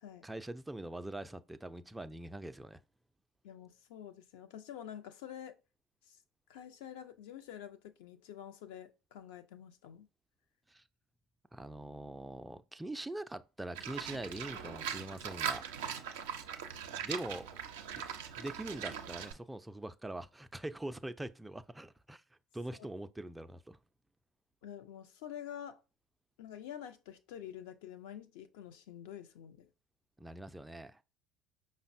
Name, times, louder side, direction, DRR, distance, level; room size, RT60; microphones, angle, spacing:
voice 1, 0.2-2.8 10.7-10.8 11.5-15.7 16.9-17.6 17.9-18.0 18.4-22.2 22.5-23.8 30.2-31.0, right 1 dB, 10° right, 0.3 m, -43 dB
voice 2, 3.4-5.6 6.1-6.2 6.5-10.1 24.6-25.8 26.4-29.7, left 10 dB, 70° left, 0.4 m, -48 dB
Livestock farm animals working animals, 13.7-19.3, right 8 dB, 75° right, 0.4 m, -40 dB
5.1 x 2.1 x 2.5 m
hypercardioid pair, 65°, 0 cm